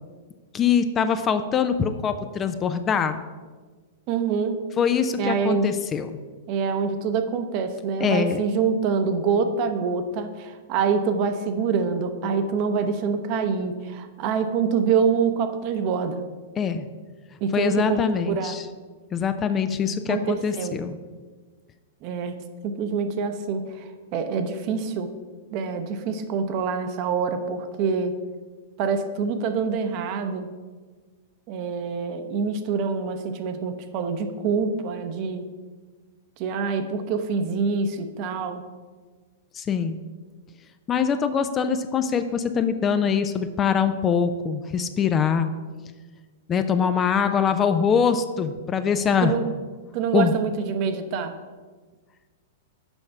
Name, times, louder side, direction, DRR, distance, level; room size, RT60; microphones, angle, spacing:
voice 1, 0.5-3.2 4.8-6.1 8.0-8.4 16.6-16.9 17.5-18.6 19.1-21.0 39.5-40.0 40.9-45.5 46.5-49.3 50.1-50.3, left 7 dB, 25° left, 9 dB, 0.4 m, -23 dB
voice 2, 4.1-4.6 5.2-5.7 6.5-16.2 17.4-18.0 18.3-18.6 20.1-20.8 22.0-22.4 22.6-25.1 25.5-28.1 28.8-30.5 31.5-35.4 36.4-38.6 49.2-49.5 49.9-51.3, right 5 dB, 40° right, 8 dB, 0.8 m, -25 dB
7.1 x 5.2 x 5.6 m, 1.4 s
figure-of-eight pair, 100°, 0 cm